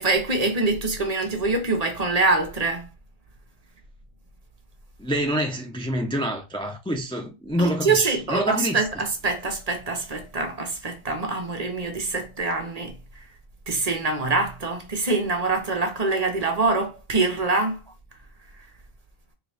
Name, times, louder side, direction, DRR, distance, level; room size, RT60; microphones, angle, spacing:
voice 1, 0.0-2.9 7.6-12.9 13.7-17.8, right 3 dB, 40° right, 0.9 m, -24 dB
voice 2, 5.0-8.8, equal, 10° left, 0.4 m, -26 dB
3.8 x 3.1 x 3.4 m
omnidirectional pair, 1.1 m